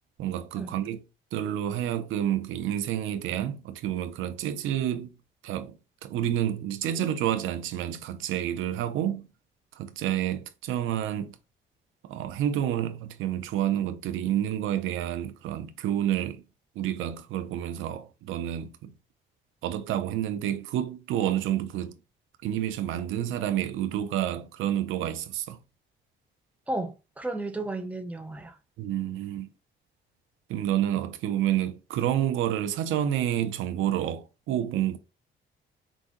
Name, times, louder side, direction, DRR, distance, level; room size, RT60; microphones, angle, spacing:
voice 1, 0.2-1.0 1.3-5.1 5.4-9.3 9.7-11.4 12.0-16.4 16.8-18.9 19.6-22.0 22.4-25.6 28.8-29.5 30.5-35.0, right 11 dB, 90° right, 0.6 m, -29 dB
voice 2, 26.7-28.6, right 2 dB, 5° right, 0.7 m, -33 dB
4.8 x 2.6 x 3.7 m
cardioid pair, 90°, 20 cm